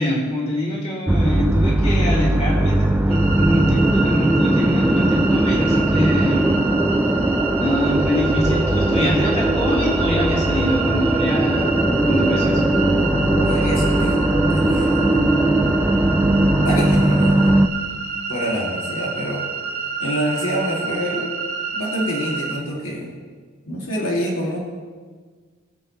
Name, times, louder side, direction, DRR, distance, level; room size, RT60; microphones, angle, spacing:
voice 1, 0.0-6.6 7.6-11.7 12.1-12.6, equal, 30° left, -5 dB, 2.8 m, -24 dB
sound 1, 1.1-17.7, right 1 dB, 10° right, 0.5 m, -19 dB
sound 2, 3.1-22.6, right 5 dB, 75° right, 1.4 m, -29 dB
voice 2, 13.0-15.4 16.6-17.6 18.3-19.5 20.0-21.4 21.7-23.3 23.7-24.6, equal, 75° left, -3 dB, 2.7 m, -26 dB
22.0 x 8.1 x 3.3 m, 1.5 s
head